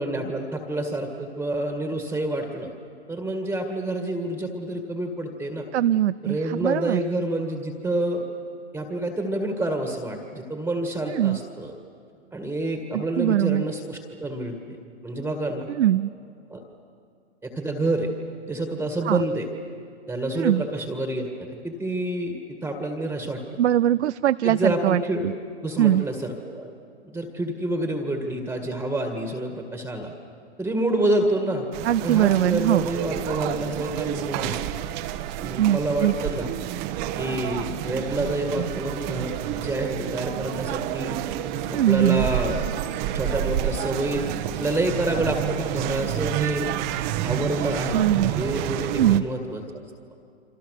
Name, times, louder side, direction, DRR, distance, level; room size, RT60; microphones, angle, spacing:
voice 1, 0.0-2.7 3.1-5.6 6.2-8.3 8.7-11.7 12.3-14.8 15.0-15.7 16.5-16.6 17.4-18.1 18.5-19.5 20.1-21.3 21.6-23.4 24.4-25.3 25.6-26.7 27.0-30.1 30.6-31.7 32.0-34.6 35.4-36.5 37.2-41.2 41.7-42.6 43.1-46.7 47.2-49.8, right 1 dB, 5° right, 4 dB, 1.9 m, -28 dB
voice 2, 5.7-7.0 11.1-11.4 12.9-13.6 15.7-16.1 19.0-19.2 20.4-20.6 23.6-25.3 25.8-26.1 31.8-32.9 35.6-36.1 41.7-42.3 47.9-48.3 49.0-49.2, right 12 dB, 80° right, 15 dB, 0.5 m, -21 dB
sound 1, 31.7-49.2, right 11 dB, 45° right, 1.2 m, -29 dB
27.5 x 25.5 x 6.5 m, 2.4 s
hypercardioid pair, 120°, 34 cm